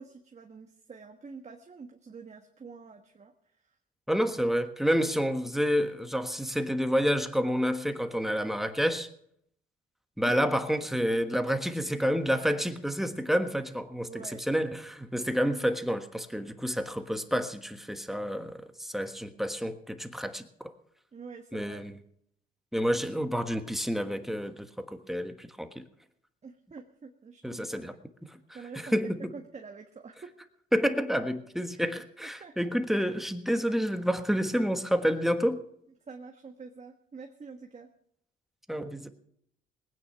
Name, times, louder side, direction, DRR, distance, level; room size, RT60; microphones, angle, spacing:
voice 1, 0.0-3.6 10.2-10.4 14.1-14.4 21.1-21.8 26.4-27.9 28.5-30.3 31.7-31.8 32.2-32.5 36.1-37.9, right 5 dB, 35° right, 1.4 m, -46 dB
voice 2, 4.1-9.1 10.2-14.1 14.5-20.7 21.5-21.9 22.7-25.8 27.4-27.9 28.7-29.2 30.7-35.6 38.7-39.1, equal, ahead, 1.4 m, -29 dB
20.0 x 9.5 x 5.8 m
cardioid pair, 90°, 20 cm